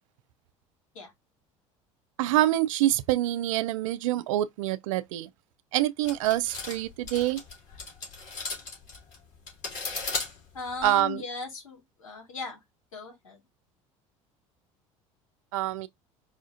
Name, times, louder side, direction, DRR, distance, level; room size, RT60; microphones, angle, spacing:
voice 1, 2.2-5.3 5.7-7.4 10.8-11.2 15.5-15.9, right 14 dB, 75° right, 0.4 m, -26 dB
sound 1, 6.0-11.0, left 4 dB, 50° left, 2.6 m, -36 dB
voice 2, 10.5-12.6 12.9-13.4, left 4 dB, 85° left, 1.7 m, -38 dB
4.9 x 2.4 x 2.5 m
hypercardioid pair, 70°, 17 cm